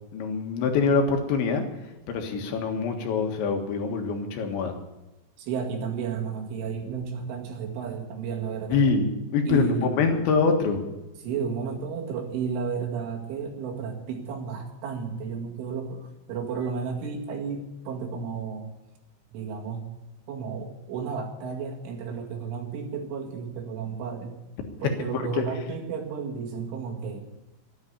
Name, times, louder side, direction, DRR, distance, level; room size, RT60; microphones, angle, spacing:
voice 1, 0.1-1.6 2.1-4.7 8.7-10.8 25.1-25.5, left 4 dB, 75° left, 4 dB, 3.8 m, -24 dB
voice 2, 5.4-8.9 9.5-10.0 11.2-18.7 19.3-19.9 20.3-24.4 24.8-27.2, right 6 dB, 90° right, 1 dB, 4.6 m, -32 dB
13.0 x 9.8 x 9.7 m, 0.98 s
omnidirectional pair, 5.4 m